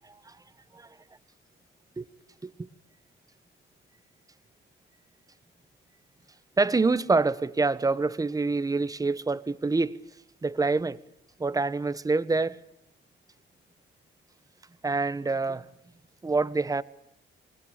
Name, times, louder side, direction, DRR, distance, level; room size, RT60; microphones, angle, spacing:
voice 1, 0.0-0.4 0.7-0.9 2.0-2.1 2.4-2.5 6.6-10.0 10.4-11.0 11.4-12.6 14.8-15.7 16.2-16.8, right 3 dB, 15° right, 1.2 m, -26 dB
27.0 x 21.0 x 8.9 m
cardioid pair, 115°, 20 cm